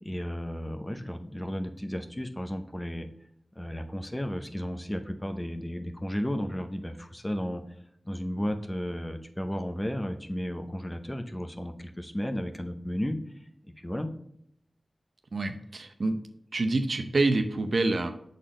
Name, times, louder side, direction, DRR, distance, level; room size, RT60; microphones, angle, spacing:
voice 1, 0.0-3.1 3.6-7.6 8.0-13.2 13.6-14.1, equal, 15° left, 6 dB, 0.7 m, -33 dB
voice 2, 15.3-16.2 16.5-18.1, right 2 dB, 65° right, 7 dB, 0.7 m, -27 dB
6.6 x 4.1 x 3.7 m, 0.72 s
wide cardioid pair, 80°, 0 cm